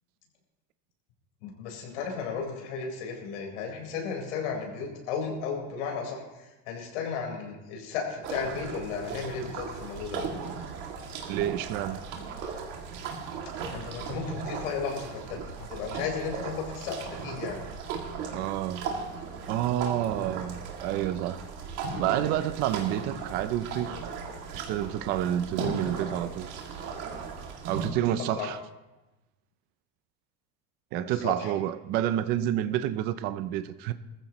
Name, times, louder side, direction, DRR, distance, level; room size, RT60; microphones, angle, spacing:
voice 1, 1.4-10.2 13.7-17.6 28.3-28.5 31.0-31.5, left 5 dB, 75° left, 4.4 m, -34 dB
sound 1, 8.2-27.9, right 5 dB, 45° right, 2.3 m, -37 dB
voice 2, 11.3-12.0 18.3-18.9 19.5-21.4 22.0-24.0 24.5-26.5 27.7-28.6 30.9-33.9, right 12 dB, 30° right, 0.4 m, -29 dB
20.5 x 14.5 x 3.0 m
cardioid pair, 180°, 36 cm